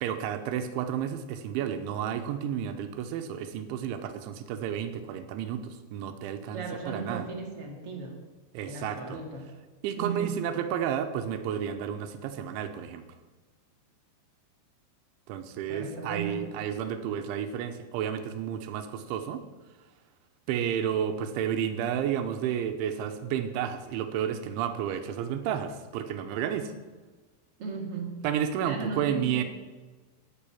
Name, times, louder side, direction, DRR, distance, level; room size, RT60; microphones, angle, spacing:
voice 1, 0.0-7.3 8.5-9.2 9.8-13.0 15.3-19.4 20.5-26.7 28.2-29.4, right 9 dB, 85° right, 8 dB, 3.3 m, -31 dB
voice 2, 6.5-8.2 8.6-9.5 10.0-10.4 15.7-16.4 27.6-28.2 28.6-29.4, right 4 dB, 45° right, 1 dB, 2.0 m, -36 dB
10.5 x 9.8 x 8.5 m, 1.3 s
omnidirectional pair, 5.3 m